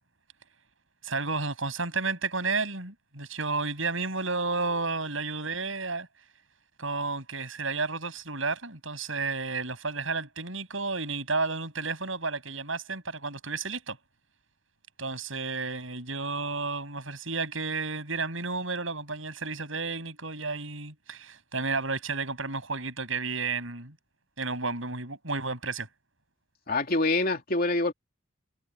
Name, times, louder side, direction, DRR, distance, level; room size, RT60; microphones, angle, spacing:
voice 1, 1.0-6.1 6.8-14.0 15.0-23.9 24.4-25.9, right 3 dB, 70° right, 7.9 m, -32 dB
voice 2, 26.7-27.9, left 2 dB, 45° left, 2.8 m, -25 dB
head